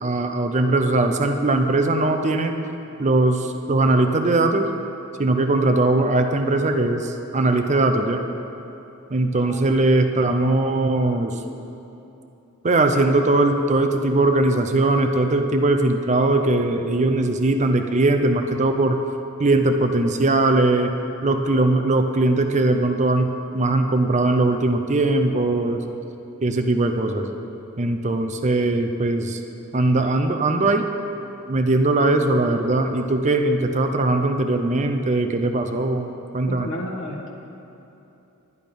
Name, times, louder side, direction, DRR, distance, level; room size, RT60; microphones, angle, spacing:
voice 1, 0.0-2.5 3.0-4.7 5.2-8.2 9.1-11.4 12.6-19.0 19.4-20.9 21.2-25.8 26.4-27.3 27.8-29.4 29.7-30.9 31.5-36.7, right 2 dB, 35° right, 6 dB, 0.6 m, -20 dB
voice 2, 9.3-9.7 36.5-37.3, left 1 dB, 60° left, 1 dB, 1.4 m, -32 dB
11.0 x 10.5 x 5.2 m, 2.9 s
head